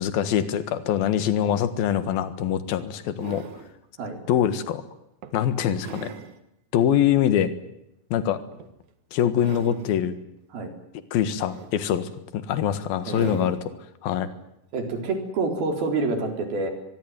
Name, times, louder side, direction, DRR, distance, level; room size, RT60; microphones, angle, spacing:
voice 1, 0.0-3.4 4.3-4.8 5.3-6.1 6.7-7.5 8.1-8.4 9.1-10.1 11.1-13.6 14.0-14.3, left 10 dB, 80° left, 12 dB, 3.4 m, -24 dB
sound 1, 2.0-2.1 2.7-3.8 4.4-4.6 5.2-6.4 6.9-7.0 8.5-8.9 9.3-10.0 11.2-12.1 13.0-13.7 15.0-15.1, right 7 dB, 60° right, 2.9 m, -42 dB
voice 2, 13.1-13.4 14.7-16.7, right 3 dB, 80° right, 5 dB, 5.8 m, -27 dB
24.0 x 21.5 x 9.5 m, 0.84 s
omnidirectional pair, 4.2 m